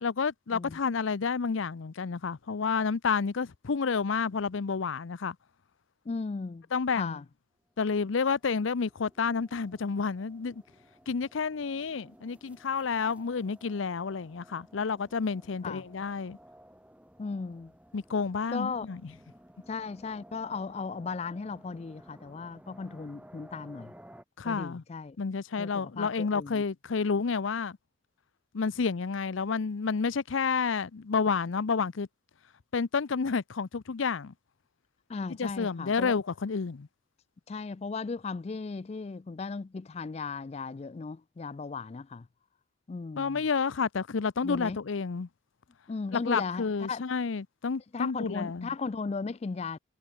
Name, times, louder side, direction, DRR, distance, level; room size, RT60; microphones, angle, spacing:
voice 1, 0.0-5.4 6.7-7.2 7.8-10.6 11.1-16.4 17.9-19.1 24.4-24.8 25.2-27.8 28.5-32.1 32.7-34.3 35.4-36.9 43.2-45.3 46.1-48.7, left 5 dB, 85° left, 0.6 m, -30 dB
voice 2, 6.1-6.6 7.0-7.2 15.6-15.8 17.2-17.7 18.5-18.9 19.7-23.9 24.4-25.2 25.6-26.6 35.1-36.1 37.5-42.2 42.9-43.4 44.4-44.8 45.9-47.0 47.9-49.8, left 4 dB, 30° left, 0.3 m, -36 dB
sound 1, 8.1-24.2, equal, 5° right, 2.4 m, -56 dB
head